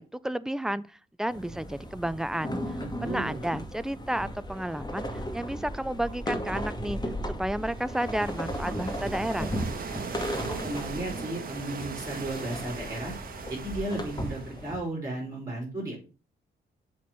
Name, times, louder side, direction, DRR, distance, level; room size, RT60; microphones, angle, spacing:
voice 1, 0.0-5.1 5.3-7.0 7.3-9.5, right 1 dB, 5° right, 0.4 m, -32 dB
sound 1, 1.3-14.8, equal, 20° left, 2.2 m, -36 dB
voice 2, 3.0-3.4 10.3-13.1 13.5-16.0, right 1 dB, 20° right, 3.9 m, -34 dB
sound 2, 7.7-14.7, right 6 dB, 45° right, 1.3 m, -40 dB
7.3 x 4.4 x 5.6 m
cardioid pair, 90°, 20 cm